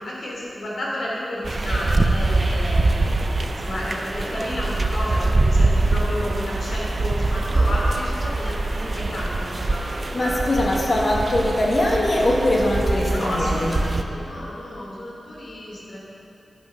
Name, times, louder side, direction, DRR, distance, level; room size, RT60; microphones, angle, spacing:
voice 1, 0.0-10.8 13.1-16.0, left 1 dB, 70° left, -4 dB, 3.1 m, -31 dB
sound 1, 1.4-14.0, right 2 dB, 40° right, 0.6 m, -23 dB
voice 2, 10.1-13.8, left 1 dB, 45° left, -3 dB, 1.9 m, -21 dB
10.5 x 8.6 x 5.8 m, 2.7 s
wide cardioid pair, 105°, 0 cm